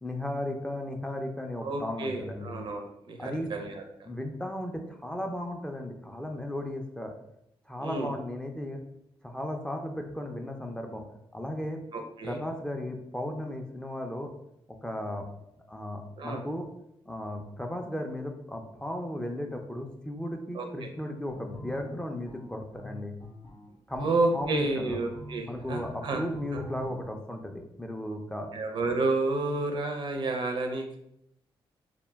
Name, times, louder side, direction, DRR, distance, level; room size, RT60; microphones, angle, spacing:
voice 1, 0.0-2.6 3.2-3.5 4.0-7.1 7.7-8.8 9.2-11.0 11.3-11.8 12.2-14.3 14.8-15.2 15.7-16.7 17.1-23.1 23.9-25.0 25.5-28.5, left 1 dB, 10° left, 3 dB, 0.3 m, -35 dB
voice 2, 1.6-3.7 7.8-8.1 11.9-12.4 16.2-16.4 20.5-20.9 24.0-26.2 26.5-26.6 28.5-31.0, right 2 dB, 55° right, 4 dB, 0.4 m, -30 dB
sound 1, 21.3-27.0, equal, 45° left, 0.6 m, -45 dB
2.1 x 2.1 x 3.3 m, 0.78 s
cardioid pair, 75°, 10 cm